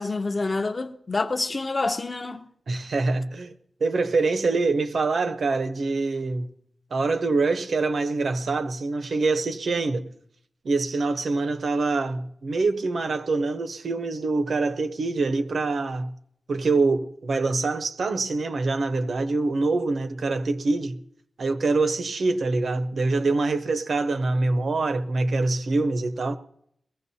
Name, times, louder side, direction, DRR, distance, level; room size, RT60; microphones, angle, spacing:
voice 1, 0.0-2.5, left 3 dB, 30° left, 0.7 m, -27 dB
voice 2, 2.7-3.6 3.8-6.5 6.9-10.1 10.6-16.1 16.5-21.0 21.4-26.4, right 3 dB, 60° right, 0.7 m, -25 dB
21.5 x 15.5 x 2.7 m
wide cardioid pair, 160°, 0 cm